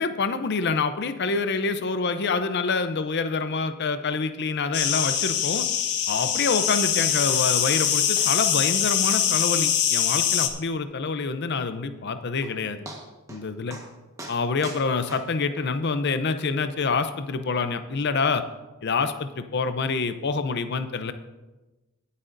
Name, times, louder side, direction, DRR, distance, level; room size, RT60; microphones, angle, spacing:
voice 1, 0.0-5.7 6.1-12.8 13.3-13.8 14.3-18.4 18.8-21.1, left 4 dB, 50° left, 10 dB, 0.6 m, -26 dB
sound 1, 4.7-10.5, left 9 dB, 90° left, 1.0 m, -23 dB
sound 2, 7.3-7.5 7.7-7.9 8.2-8.3 8.6-8.7 9.1-9.2 9.6-9.7 10.2-10.3 12.0-12.1 12.4-12.6 12.9-13.4 13.7-13.9 14.2-15.7 16.4-16.5, right 2 dB, 15° right, 1.2 m, -42 dB
19.0 x 8.3 x 2.6 m, 1.1 s
head